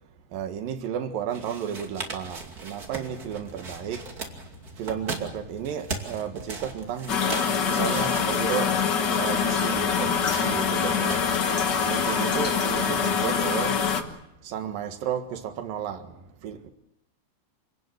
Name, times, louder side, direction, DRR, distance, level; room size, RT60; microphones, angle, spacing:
voice 1, 0.3-4.1 4.8-7.2 7.7-8.8 9.0-11.3 11.9-13.8 14.4-16.7, right 9 dB, 70° right, 3.3 m, -33 dB
sound 1, 1.3-13.1, right 3 dB, 30° right, 2.6 m, -39 dB
sound 2, 2.9-14.1, left 2 dB, 35° left, 8.1 m, -46 dB
sound 3, 7.1-14.0, left 6 dB, 80° left, 0.9 m, -24 dB
28.0 x 18.5 x 8.0 m
omnidirectional pair, 4.3 m